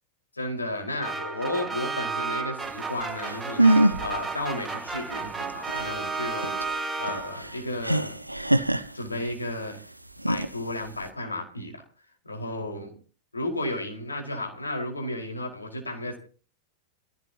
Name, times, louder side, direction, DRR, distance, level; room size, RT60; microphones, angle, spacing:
voice 1, 0.3-8.2 8.9-9.8 10.3-11.8 12.2-12.9 13.3-16.2, left 1 dB, 80° left, 1 dB, 5.0 m, -33 dB
sound 1, 1.0-7.5, right 4 dB, 10° right, 1.9 m, -33 dB
sound 2, 3.0-3.1 3.2-4.2 4.5-4.6 4.9-9.5 10.1-11.1, right 1 dB, 85° right, 0.9 m, -24 dB
27.0 x 16.0 x 2.9 m, 0.40 s
figure-of-eight pair, 90°, 0 cm